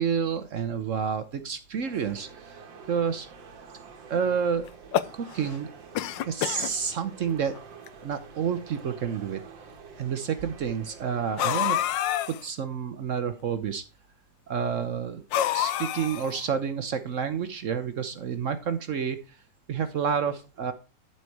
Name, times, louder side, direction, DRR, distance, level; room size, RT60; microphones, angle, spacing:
voice 1, 0.0-2.3 2.9-3.3 4.1-4.7 5.1-5.7 6.2-7.6 8.0-9.4 10.0-11.8 12.3-13.8 14.5-15.2 15.5-19.4 19.7-20.7, right 7 dB, 60° right, 10 dB, 0.8 m, -29 dB
sound 1, 1.8-11.9, right 5 dB, 80° right, 2.0 m, -47 dB
sound 2, 4.7-5.6 5.9-6.7 7.5-7.6 7.9-8.0 8.9-9.0 11.4-12.4 15.3-16.4, left 12 dB, 80° left, 1.3 m, -27 dB
11.5 x 4.5 x 4.6 m, 0.32 s
omnidirectional pair, 2.0 m